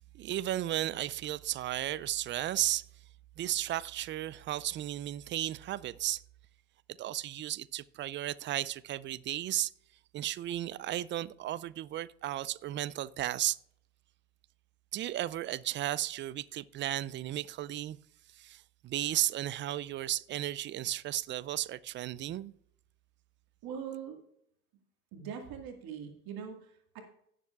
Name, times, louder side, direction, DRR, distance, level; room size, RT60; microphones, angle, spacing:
voice 1, 0.1-2.9 3.4-6.2 7.0-9.7 10.1-13.6 14.9-18.0 18.3-22.5, right 13 dB, 30° right, 0.4 m, -34 dB
voice 2, 23.6-24.2 25.1-27.0, right 7 dB, 55° right, 2.1 m, -42 dB
17.5 x 7.4 x 2.4 m
hypercardioid pair, 70°, 44 cm